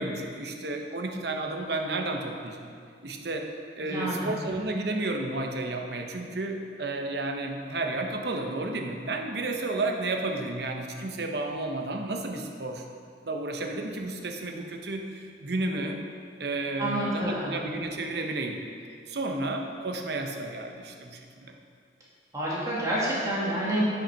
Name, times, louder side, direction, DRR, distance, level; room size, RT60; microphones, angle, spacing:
voice 1, 0.0-2.7 3.0-3.5 3.8-12.8 13.2-16.0 16.4-18.6 19.1-21.6, right 2 dB, 60° right, 3 dB, 0.9 m, -32 dB
voice 2, 3.8-4.3 16.8-17.6 22.3-23.8, right 1 dB, 20° right, -7 dB, 2.1 m, -28 dB
8.8 x 5.7 x 5.7 m, 2.2 s
head